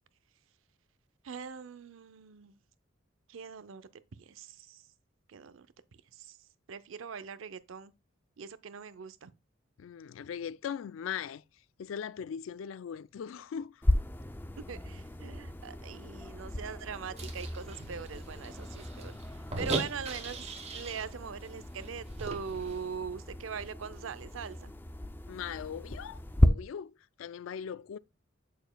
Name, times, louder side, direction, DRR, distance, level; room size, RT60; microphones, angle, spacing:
voice 1, 1.2-2.6 3.3-4.9 5.3-5.7 6.1-7.9 8.4-9.3 14.7-24.7, right 6 dB, 85° right, 0.5 m, -42 dB
voice 2, 9.8-11.4 11.8-13.8 25.3-28.0, left 7 dB, 80° left, 0.3 m, -40 dB
sound 1, 13.8-26.5, left 1 dB, 10° left, 0.4 m, -34 dB
sound 2, 17.2-21.1 21.4-21.5 21.8-22.8, right 3 dB, 35° right, 1.1 m, -39 dB
6.9 x 6.4 x 2.2 m
head